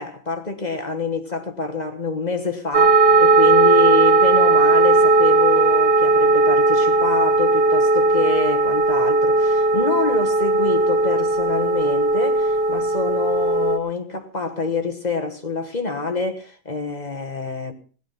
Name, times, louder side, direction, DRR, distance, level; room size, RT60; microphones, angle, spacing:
voice 1, 0.0-17.7, left 4 dB, 25° left, 1.2 m, -26 dB
sound 1, 2.7-13.8, right 3 dB, 30° right, 1.4 m, -17 dB
17.5 x 11.0 x 5.6 m
omnidirectional pair, 2.2 m